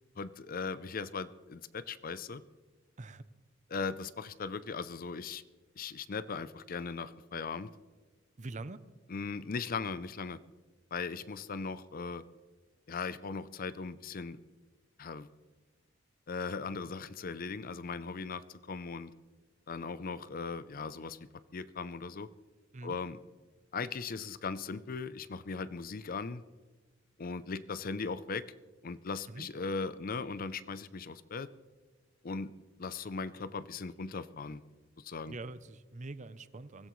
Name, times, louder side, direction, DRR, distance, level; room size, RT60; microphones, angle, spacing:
voice 1, 0.2-2.4 3.7-5.4 5.8-7.7 9.1-10.4 10.9-12.2 12.9-14.4 15.0-15.3 16.3-19.1 19.7-22.3 22.8-23.2 23.7-26.4 27.2-28.4 28.8-31.5 32.2-32.5 32.8-34.6 35.0-35.4, left 4 dB, 45° left, 15 dB, 0.5 m, -38 dB
voice 2, 8.4-8.8 22.7-23.0 29.3-29.5 35.3-36.9, right 2 dB, 40° right, 14 dB, 0.6 m, -44 dB
24.0 x 16.0 x 3.1 m, 1.3 s
head